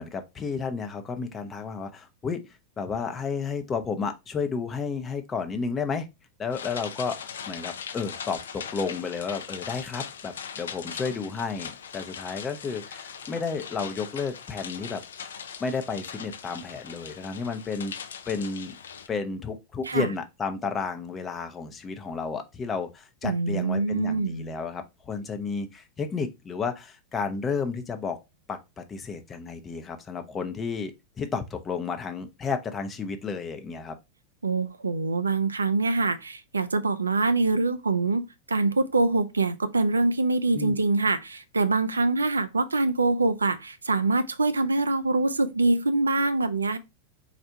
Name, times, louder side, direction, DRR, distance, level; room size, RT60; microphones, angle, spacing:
voice 1, 0.0-6.1 6.4-15.0 15.6-18.0 18.3-18.7 19.1-28.2 28.5-34.0 40.5-40.7, left 5 dB, 20° left, 0.6 m, -32 dB
sound 1, 6.5-19.1, left 7 dB, 65° left, 0.4 m, -40 dB
voice 2, 23.2-24.5 34.4-46.8, right 3 dB, 75° right, 0.4 m, -24 dB
4.3 x 2.4 x 4.4 m
figure-of-eight pair, 90°, 0 cm